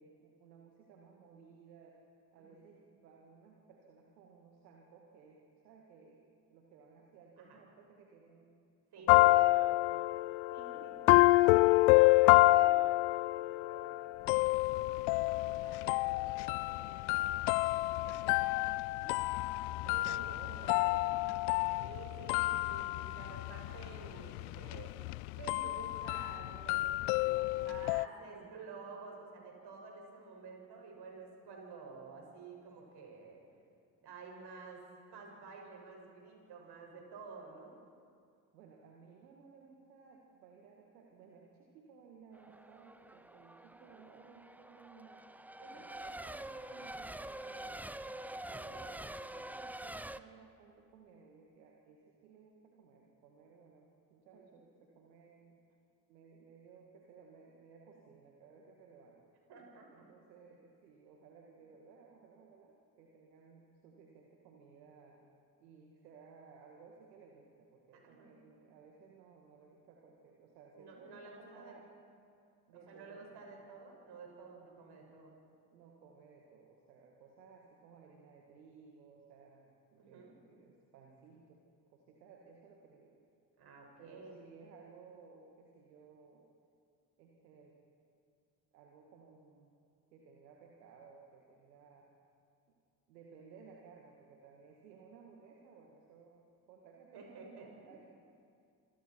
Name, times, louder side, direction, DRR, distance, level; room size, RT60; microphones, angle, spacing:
voice 1, 0.0-2.0 2.3-6.2 6.5-8.5 9.0-10.2 10.7-11.1 11.8-14.3 14.6-17.9 19.2-19.5 19.8-22.5 27.3-28.8 38.5-45.3 45.7-48.0 48.5-55.6 56.1-59.2 59.9-65.2 65.6-71.9 72.7-73.5 75.7-81.6 81.9-83.1 84.0-86.5 87.2-87.8 88.7-89.7 90.1-92.1 93.1-98.1, right 5 dB, 75° right, 0 dB, 2.1 m, -58 dB
sound 1, 9.1-28.1, left 20 dB, 60° left, 0.5 m, -28 dB
voice 2, 10.5-10.9 18.0-18.3 19.0-19.1 19.9-20.3 21.8-25.0 25.3-27.3 27.6-33.4 34.0-37.7 45.6-45.9 48.6-48.7 54.3-54.5 59.5-60.1 67.9-68.4 70.7-71.7 72.7-75.3 80.0-80.3 83.6-84.4 97.1-97.9, right 4 dB, 55° right, 0 dB, 6.6 m, -51 dB
Race car auto racing / Accelerating revving vroom / Mechanisms, 42.3-50.2, right 1 dB, 5° right, 0.7 m, -46 dB
26.5 x 25.0 x 4.6 m, 2.3 s
figure-of-eight pair, 50°, 49 cm